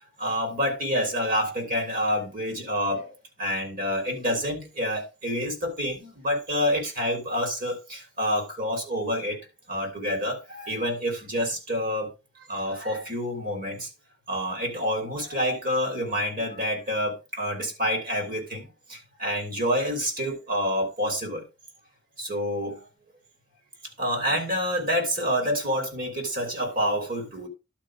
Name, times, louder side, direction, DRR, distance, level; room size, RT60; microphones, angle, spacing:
voice 1, 0.2-3.1 3.4-9.4 9.7-12.1 12.5-13.9 14.3-21.4 22.2-22.8 24.0-27.5, equal, 45° right, 3.4 m, -28 dB
11.5 x 4.4 x 4.9 m
head